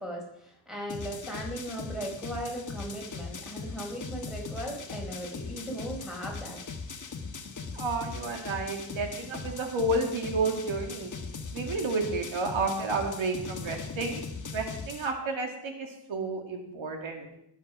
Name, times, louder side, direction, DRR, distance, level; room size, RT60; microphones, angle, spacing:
voice 1, 0.0-6.6, right 1 dB, ahead, -1 dB, 4.6 m, -38 dB
sound 1, 0.9-15.1, left 4 dB, 40° left, 1.4 m, -39 dB
voice 2, 7.7-11.1 11.5-14.2 14.5-17.3, right 3 dB, 85° right, 4 dB, 2.3 m, -31 dB
18.5 x 7.5 x 6.1 m, 0.76 s
wide cardioid pair, 120°, 46 cm